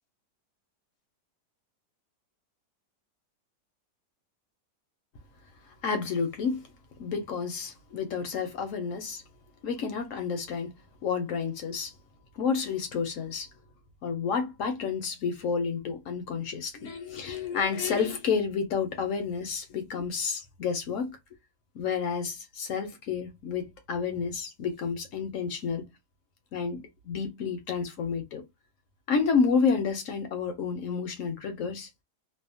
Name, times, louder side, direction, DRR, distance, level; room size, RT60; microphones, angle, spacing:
voice 1, 5.8-6.7 7.0-9.2 9.6-11.9 12.3-13.5 14.0-21.2 21.7-25.9 26.5-28.4 29.1-31.9, left 5 dB, 65° left, 0.8 m, -30 dB
2.7 x 2.0 x 2.6 m
omnidirectional pair, 1.8 m